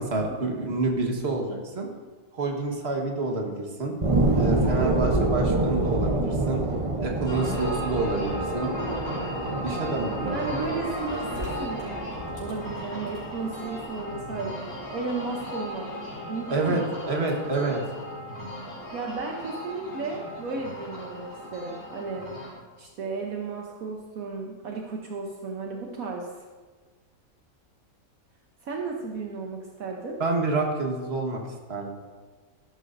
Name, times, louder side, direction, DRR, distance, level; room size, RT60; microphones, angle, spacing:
voice 1, 0.0-1.9 2.3-3.9 4.4-6.6 7.0-8.7 9.6-10.4 16.5-17.8 30.2-31.4 31.7-31.9, right 3 dB, 45° right, 1 dB, 1.6 m, -28 dB
sound 1, 4.0-15.0 15.5-15.6, right 2 dB, 30° right, 0.7 m, -28 dB
voice 2, 4.8-5.1 10.2-12.1 12.4-16.0 16.3-16.9 18.9-26.5 28.6-30.2, right 4 dB, 70° right, 0 dB, 1.3 m, -34 dB
sound 2, 7.3-22.5, left 1 dB, 75° left, 4.6 m, -36 dB
13.0 x 12.0 x 2.6 m, 1.4 s
omnidirectional pair, 1.6 m